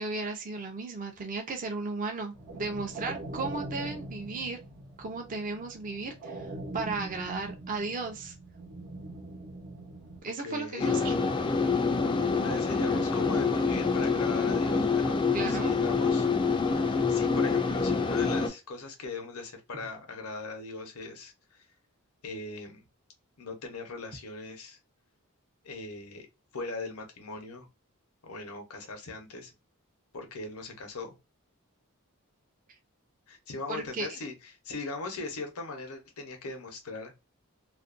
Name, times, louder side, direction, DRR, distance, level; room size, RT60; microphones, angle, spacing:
voice 1, 0.0-4.6 5.0-8.3 10.2-11.1 15.3-15.7 33.7-34.1, right 3 dB, 40° right, 0.4 m, -35 dB
sound 1, 2.3-10.2, right 2 dB, 70° right, 0.8 m, -42 dB
voice 2, 10.4-10.9 12.4-15.2 15.5-16.3 17.1-21.7 22.2-22.9 23.4-24.8 25.6-26.3 26.5-27.7 28.2-29.5 30.1-31.1 33.3-37.1, left 3 dB, 85° left, 0.8 m, -39 dB
sound 2, 10.8-18.5, left 4 dB, 20° left, 0.3 m, -26 dB
2.5 x 2.1 x 2.4 m
head